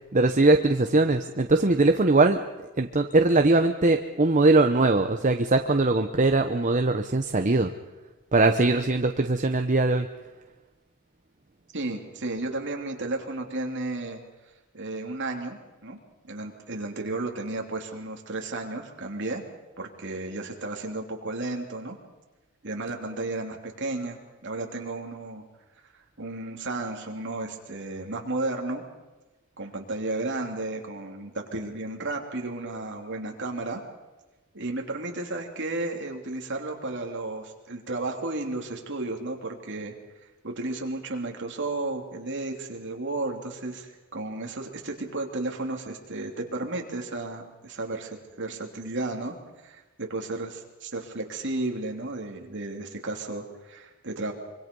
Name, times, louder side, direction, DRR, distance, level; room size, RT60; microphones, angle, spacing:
voice 1, 0.1-2.4 2.8-7.7 8.3-10.1, right 2 dB, 35° right, 6 dB, 0.9 m, -21 dB
voice 2, 11.7-14.2 14.7-16.0 16.2-19.4 19.8-22.0 22.6-25.4 26.2-28.8 29.6-33.8 34.5-39.9 40.4-49.3 49.6-54.3, right 2 dB, 55° right, 2 dB, 3.1 m, -33 dB
25.5 x 24.5 x 5.4 m, 1.1 s
head